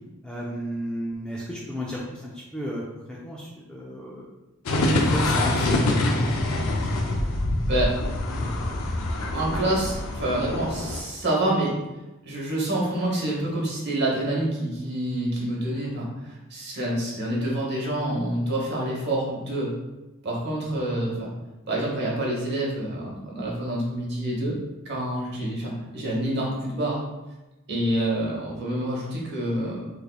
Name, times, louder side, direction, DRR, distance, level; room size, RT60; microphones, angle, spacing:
voice 1, 0.2-4.3 4.8-5.9, equal, 5° left, -5 dB, 0.3 m, -33 dB
sound 1, 4.7-11.0, left 2 dB, 75° left, 0.5 m, -25 dB
voice 2, 9.1-11.7 12.2-19.7 20.2-21.3 21.7-24.6 24.8-27.0 27.7-29.9, right 1 dB, 50° right, -3 dB, 1.0 m, -27 dB
3.5 x 3.3 x 2.3 m, 1.0 s
head